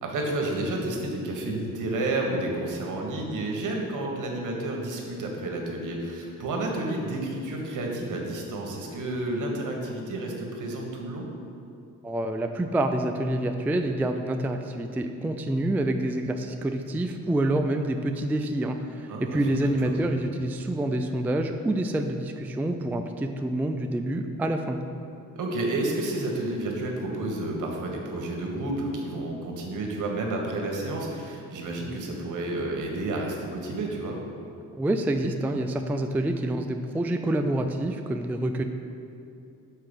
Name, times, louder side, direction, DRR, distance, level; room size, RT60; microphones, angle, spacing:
voice 1, 0.0-11.3 19.1-19.9 25.3-34.2, right 2 dB, 65° right, 0 dB, 1.3 m, -30 dB
voice 2, 12.0-24.8 34.8-38.6, right 1 dB, 5° right, 5 dB, 0.3 m, -27 dB
5.7 x 4.5 x 5.2 m, 2.6 s
cardioid pair, 75°, 33 cm